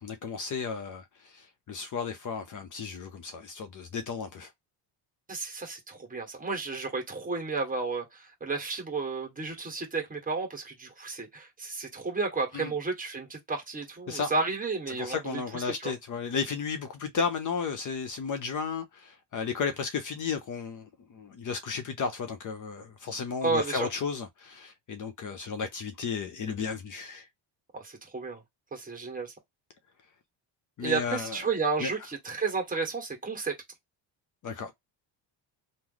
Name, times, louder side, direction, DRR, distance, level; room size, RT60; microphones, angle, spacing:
voice 1, 0.0-4.5 12.5-12.7 14.1-14.3 14.9-27.3 30.8-31.4 31.8-31.9 34.4-34.7, left 5 dB, 40° left, 0.7 m, -34 dB
voice 2, 5.3-15.9 23.4-23.9 27.7-28.4 28.7-29.3 30.8-33.5, right 4 dB, 15° right, 1.5 m, -32 dB
3.1 x 2.0 x 3.9 m
cardioid pair, 130°, 46 cm